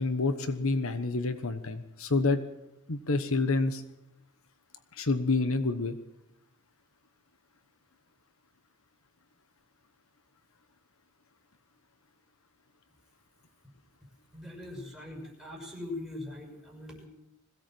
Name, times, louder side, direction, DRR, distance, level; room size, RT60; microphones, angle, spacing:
voice 1, 0.0-2.4 2.9-3.8 4.9-6.0, left 3 dB, 65° left, 11 dB, 1.2 m, -28 dB
voice 2, 14.3-17.0, left 2 dB, ahead, 2 dB, 6.4 m, -41 dB
21.5 x 17.0 x 7.8 m, 0.88 s
head